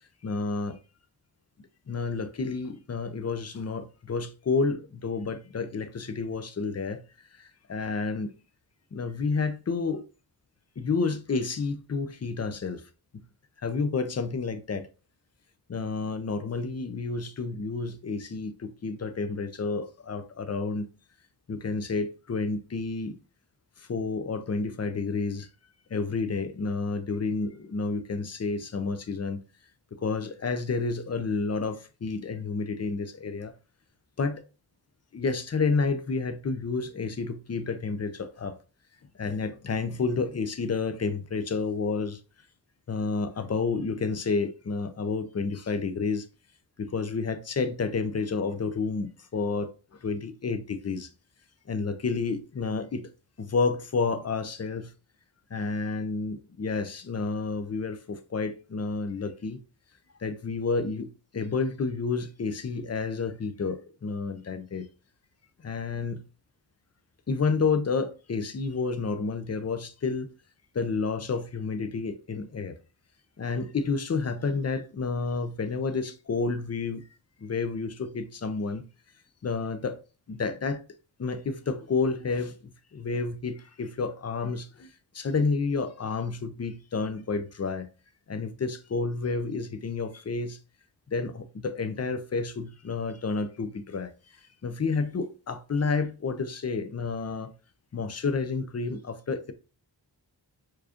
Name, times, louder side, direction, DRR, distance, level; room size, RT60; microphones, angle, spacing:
voice 1, 0.2-0.8 1.9-7.0 7.3-8.3 8.9-10.0 10.8-12.8 13.6-14.9 15.7-20.9 21.5-23.2 23.8-25.5 25.9-29.4 30.0-33.5 34.2-34.4 35.1-38.6 39.2-42.2 42.9-46.3 46.8-49.7 50.0-51.1 51.7-53.1 53.4-54.9 55.5-59.6 60.2-64.9 65.6-66.2 67.3-70.3 70.7-72.8 73.4-77.0 77.4-78.9 79.4-80.0 80.3-80.8 81.2-84.9 85.1-87.9 88.3-90.6 91.1-94.1 94.6-97.5 97.9-99.5, left 4 dB, 35° left, 0.7 m, -30 dB
4.6 x 2.5 x 2.9 m
cardioid pair, 40°, 45 cm